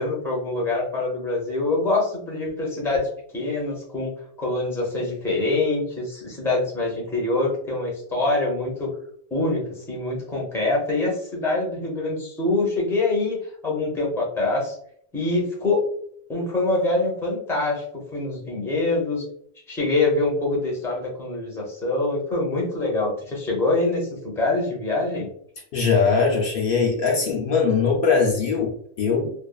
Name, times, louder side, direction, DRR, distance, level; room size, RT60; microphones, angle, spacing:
voice 1, 0.0-3.1 3.3-4.1 4.4-8.9 9.3-13.4 13.6-14.8 15.1-15.8 16.3-17.8 18.1-19.2 19.7-25.3, left 2 dB, 5° left, -3 dB, 0.6 m, -24 dB
voice 2, 25.7-29.3, left 5 dB, 65° left, -1 dB, 0.8 m, -21 dB
2.6 x 2.4 x 2.3 m, 0.63 s
omnidirectional pair, 1.0 m